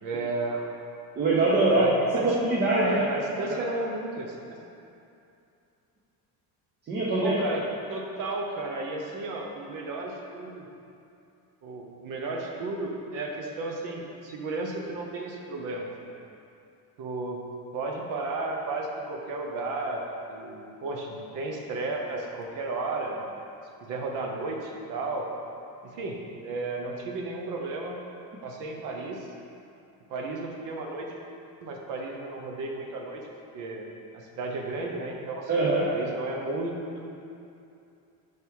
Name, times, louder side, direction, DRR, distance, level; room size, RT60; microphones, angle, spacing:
voice 1, 0.0-0.6 1.7-2.4 2.8-4.6 7.2-10.7 11.6-16.2 17.0-17.4 17.7-23.3 23.8-25.3 25.8-28.0 28.4-29.3 30.1-31.1 31.6-33.2 33.5-33.9 34.1-37.2, right 2 dB, 55° right, 0 dB, 0.8 m, -33 dB
voice 2, 1.2-1.9 2.2-3.0 6.9-7.4 35.5-35.9, right 2 dB, 25° right, -5 dB, 0.7 m, -23 dB
5.4 x 4.8 x 4.6 m, 2.6 s
cardioid pair, 170°, 37 cm